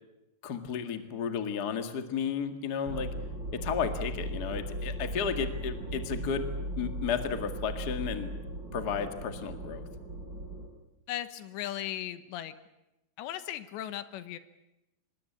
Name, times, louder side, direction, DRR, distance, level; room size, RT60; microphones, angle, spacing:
voice 1, 0.4-3.1 3.5-6.5 6.7-8.3 8.7-9.8, left 6 dB, 55° left, 7 dB, 1.0 m, -33 dB
sound 1, 2.8-10.7, right 1 dB, 25° right, 4.0 m, -37 dB
voice 2, 11.1-12.5 13.2-14.4, left 12 dB, 80° left, 12 dB, 3.3 m, -37 dB
25.5 x 21.5 x 8.6 m, 0.94 s
omnidirectional pair, 5.1 m